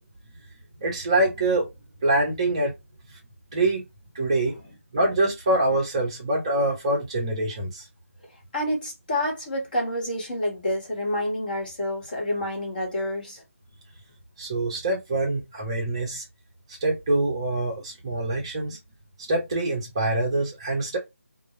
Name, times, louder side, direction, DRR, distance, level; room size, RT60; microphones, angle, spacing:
voice 1, 0.8-1.7 2.0-2.7 3.5-3.8 4.1-4.5 4.9-7.9 14.4-16.2 16.7-18.8 19.3-21.0, right 2 dB, 20° right, 0.6 m, -25 dB
voice 2, 8.5-13.4, left 1 dB, 35° left, 1.0 m, -28 dB
2.2 x 2.0 x 2.9 m
figure-of-eight pair, 160°, 8 cm